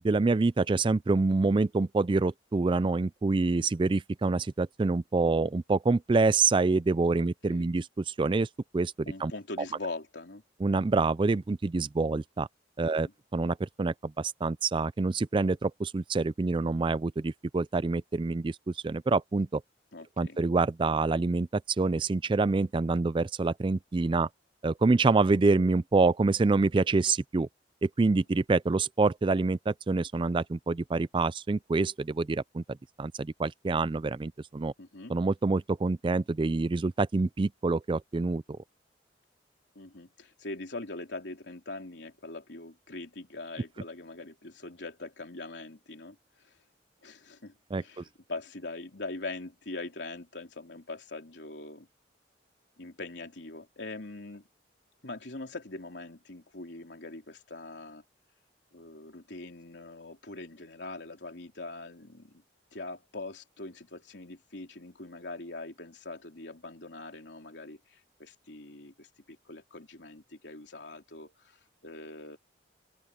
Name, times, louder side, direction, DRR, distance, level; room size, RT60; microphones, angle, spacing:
voice 1, 0.0-8.5 8.7-9.3 10.6-12.5 12.8-19.6 20.2-24.3 24.6-27.5 27.8-34.7 35.1-38.4 47.7-48.0, right 3 dB, 25° right, 0.4 m, -26 dB
voice 2, 7.1-7.7 9.0-10.4 12.8-13.1 19.9-20.4 34.8-35.1 39.7-46.6 47.0-51.9 52.8-54.5 55.0-58.0 58.7-62.4 62.7-72.4, left 2 dB, 70° left, 3.5 m, -42 dB
open air
head